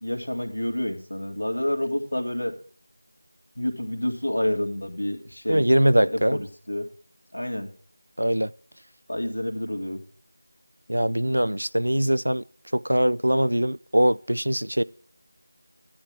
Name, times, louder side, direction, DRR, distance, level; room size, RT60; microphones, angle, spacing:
voice 1, 0.0-2.5 3.6-5.6 6.0-6.9 7.3-7.7 9.1-10.0, left 1 dB, 80° left, 2.2 m, -28 dB
voice 2, 5.5-6.4 8.2-8.5 10.9-12.4 12.7-14.8, right 1 dB, 85° right, 0.4 m, -22 dB
12.0 x 9.9 x 3.6 m
figure-of-eight pair, 170°, 0 cm